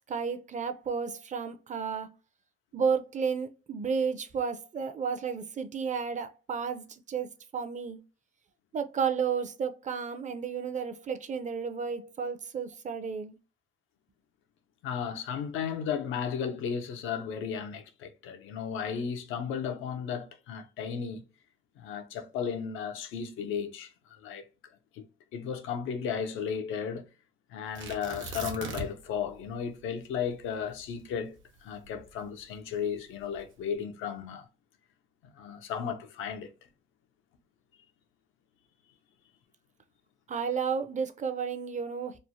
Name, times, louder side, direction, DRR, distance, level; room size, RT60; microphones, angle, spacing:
voice 1, 0.1-2.1 2.7-8.0 8.7-13.4 40.3-42.2, right 6 dB, 40° right, 0.5 m, -32 dB
voice 2, 14.8-21.2 21.8-25.1 25.3-27.0 27.5-34.5 35.2-36.5, left 7 dB, 90° left, 0.5 m, -35 dB
Tearing, 27.8-29.2 29.4-29.5 30.1-32.5 33.2-33.6, right 3 dB, 75° right, 0.8 m, -40 dB
3.1 x 2.1 x 2.6 m
cardioid pair, 90°, 20 cm